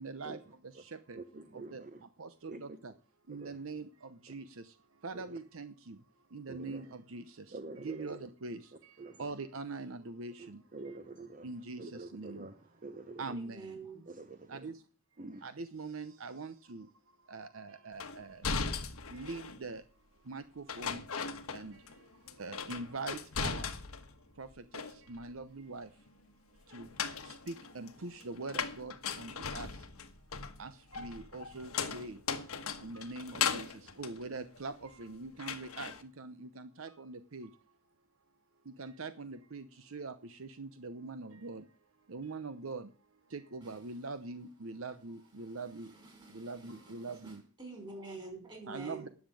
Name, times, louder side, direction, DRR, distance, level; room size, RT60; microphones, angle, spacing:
voice 1, 0.0-1.2 1.5-2.9 3.3-11.0 11.4-12.5 13.2-13.8 14.5-14.8 15.4-16.9 17.2-18.6 19.0-19.8 20.1-23.7 24.3-26.1 26.5-29.9 30.6-32.5 32.8-37.6 38.6-45.9 46.3-47.4 48.6-49.1, right 3 dB, 70° right, 11 dB, 0.8 m, -44 dB
voice 2, 1.1-2.0 2.5-2.8 3.3-3.6 4.3-4.4 5.1-5.4 6.5-6.8 7.5-8.2 9.0-9.3 10.4-11.5 11.8-13.4 14.1-14.7 15.2-15.5, right 3 dB, 35° right, 10 dB, 0.9 m, -47 dB
voice 3, 13.4-14.0 46.0-46.9 47.2-47.3 47.6-49.1, right 3 dB, 20° right, 3 dB, 5.2 m, -47 dB
sound 1, 18.0-19.6 20.7-22.0 22.3-24.1 24.5-25.3 26.7-35.0 35.4-36.0, left 6 dB, 90° left, 1.3 m, -38 dB
10.5 x 7.4 x 9.0 m, 0.39 s
head